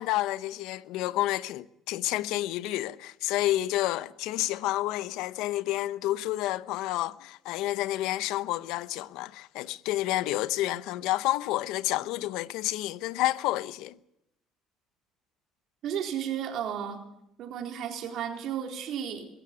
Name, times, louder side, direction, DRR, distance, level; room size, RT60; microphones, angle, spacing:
voice 1, 0.0-14.0, left 16 dB, 80° left, 0.8 m, -29 dB
voice 2, 15.8-17.0 17.4-19.3, right 9 dB, 65° right, 3.9 m, -33 dB
23.0 x 14.5 x 9.7 m
cardioid pair, 115°, 0 cm